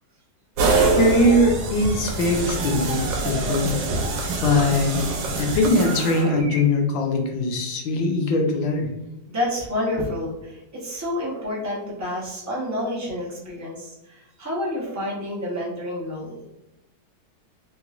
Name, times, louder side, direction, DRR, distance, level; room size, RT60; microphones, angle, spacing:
sound 1, 0.6-6.6, right 3 dB, 85° right, 1.3 m, -24 dB
voice 1, 0.8-3.8 4.4-5.1 5.4-8.9, left 2 dB, 90° left, 3 dB, 1.4 m, -21 dB
voice 2, 9.3-16.4, left 1 dB, 20° right, -6 dB, 0.4 m, -29 dB
3.5 x 3.0 x 2.4 m, 0.93 s
omnidirectional pair, 2.0 m